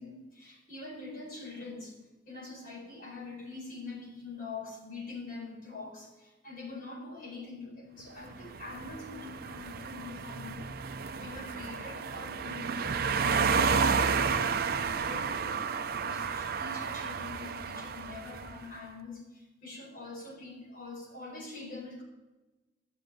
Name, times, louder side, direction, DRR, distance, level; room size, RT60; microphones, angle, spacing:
voice 1, 0.0-2.0 2.2-22.0, left 3 dB, 50° left, -2 dB, 4.6 m, -44 dB
sound 1, 8.3-18.6, right 5 dB, 55° right, 0.6 m, -31 dB
12.5 x 7.0 x 9.3 m, 1.1 s
head